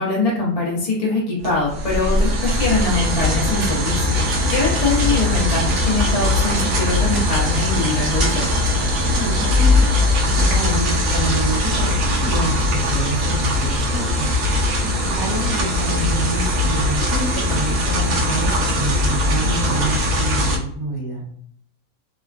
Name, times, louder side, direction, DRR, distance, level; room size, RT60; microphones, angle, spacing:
voice 1, 0.0-4.2 4.5-8.6, left 3 dB, 35° left, -4 dB, 0.6 m, -23 dB
sound 1, 1.4-20.6, left 1 dB, 65° right, 1.0 m, -20 dB
voice 2, 9.2-12.6 12.9-21.3, right 2 dB, 30° right, -5 dB, 0.8 m, -28 dB
3.2 x 2.1 x 2.4 m, 0.64 s
omnidirectional pair, 1.4 m